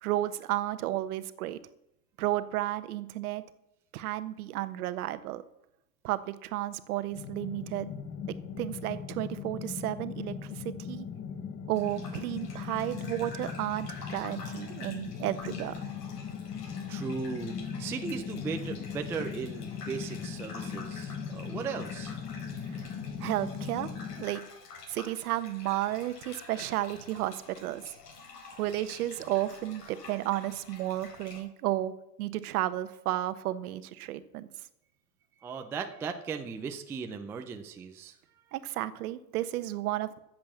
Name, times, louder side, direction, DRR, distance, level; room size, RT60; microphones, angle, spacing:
voice 1, 0.0-1.6 2.2-3.4 3.9-5.4 6.0-7.9 8.6-11.1 11.7-15.8 22.6-22.8 23.2-23.9 24.2-24.4 24.9-27.9 28.6-31.9 32.2-34.5 38.5-40.2, right 14 dB, 60° right, 13 dB, 1.2 m, -32 dB
sound 1, 7.1-24.3, left 7 dB, 20° left, 0.9 m, -39 dB
Gurgling / Bathtub (filling or washing), 11.7-31.4, left 4 dB, 65° left, 3.9 m, -49 dB
voice 2, 16.9-22.2 35.4-38.2, right 5 dB, 5° right, 5 dB, 0.3 m, -37 dB
13.0 x 7.7 x 7.2 m, 0.84 s
hypercardioid pair, 115°, 50 cm